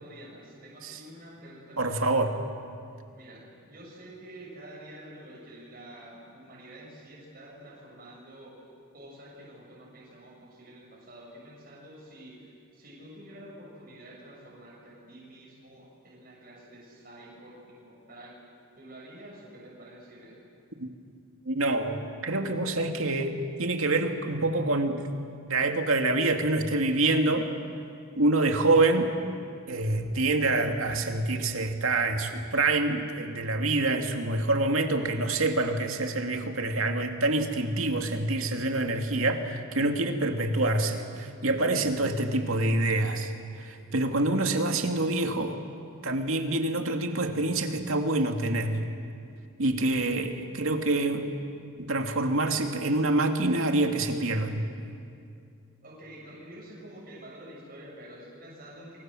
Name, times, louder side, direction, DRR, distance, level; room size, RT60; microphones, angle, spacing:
voice 1, 0.0-2.4 3.1-18.4 18.8-20.4 55.8-59.0, right 1 dB, 40° right, -5 dB, 7.0 m, -48 dB
voice 2, 1.8-2.3 20.8-20.9 21.5-25.1 25.5-27.5 28.1-29.1 29.7-43.3 43.6-45.6 46.0-48.8 49.6-51.3 51.8-54.7, right 2 dB, 75° right, 5 dB, 2.3 m, -26 dB
29.5 x 24.0 x 7.7 m, 2.4 s
head